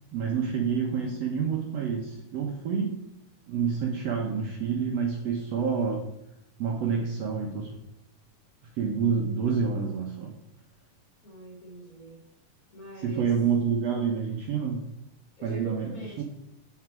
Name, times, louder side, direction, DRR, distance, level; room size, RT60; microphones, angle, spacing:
voice 1, 0.1-3.0 3.5-6.1 6.6-7.8 8.8-10.3 13.0-14.8 15.4-15.9 16.2-16.3, right 6 dB, 65° right, 1 dB, 1.9 m, -28 dB
voice 2, 11.2-12.2 12.7-13.4 15.4-16.2, right 1 dB, 25° left, -3 dB, 3.6 m, -44 dB
9.8 x 8.0 x 4.6 m, 0.83 s
omnidirectional pair, 3.7 m